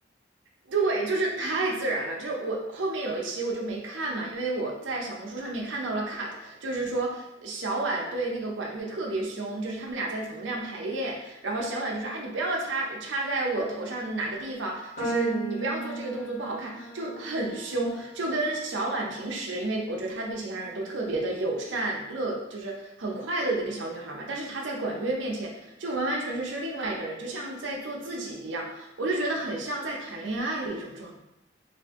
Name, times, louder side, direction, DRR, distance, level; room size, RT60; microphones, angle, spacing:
voice 1, 0.7-31.1, right 2 dB, 80° right, -1 dB, 0.6 m, -31 dB
sound 1, 15.0-21.3, right 1 dB, 55° left, 1.4 m, -39 dB
2.6 x 2.6 x 3.5 m, 0.87 s
head